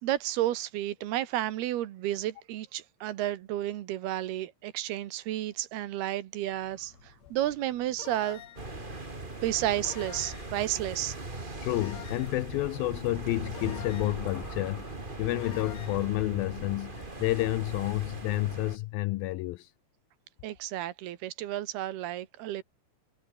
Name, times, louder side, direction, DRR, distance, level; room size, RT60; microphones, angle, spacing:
voice 1, 0.0-8.4 9.4-11.7 20.4-22.6, right 13 dB, 75° right, 3.2 m, -32 dB
sound 1, 6.4-18.1, left 3 dB, 40° left, 7.3 m, -56 dB
sound 2, 8.0-8.7 9.8-10.6 11.7-12.4 13.5-14.3 15.4-16.0, left 11 dB, 60° left, 3.0 m, -46 dB
sound 3, 8.6-18.8, right 2 dB, 15° right, 2.5 m, -40 dB
voice 2, 11.6-19.7, left 18 dB, 80° left, 2.2 m, -30 dB
omnidirectional pair, 4.7 m